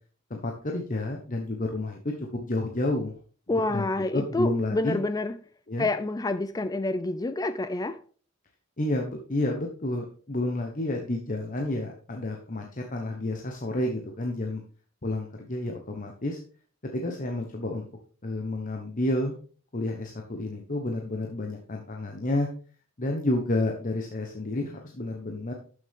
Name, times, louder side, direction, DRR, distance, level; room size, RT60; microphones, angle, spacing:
voice 1, 0.3-3.1 3.7-5.0 5.7-5.9 8.8-14.6 15.0-16.4 16.9-17.8 18.2-19.3 19.7-22.5 23.0-25.5, left 2 dB, 40° left, 1.1 m, -30 dB
voice 2, 3.5-5.3 5.8-8.0, left 2 dB, 20° left, 0.4 m, -28 dB
12.0 x 6.6 x 3.6 m
head